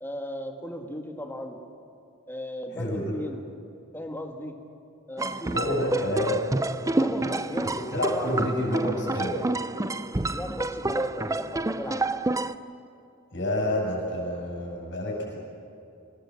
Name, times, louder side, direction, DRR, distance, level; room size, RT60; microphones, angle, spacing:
voice 1, 0.0-1.6 2.3-3.6 3.9-4.5 5.1-6.3 7.0-8.4 10.2-12.2, equal, 10° left, 4 dB, 1.7 m, -37 dB
voice 2, 2.7-3.2 5.5-6.4 7.9-9.4 13.3-15.4, left 1 dB, 55° left, -2 dB, 7.5 m, -28 dB
sound 1, 5.2-12.5, right 2 dB, 15° right, 0.5 m, -29 dB
26.0 x 19.5 x 7.5 m, 2.6 s
head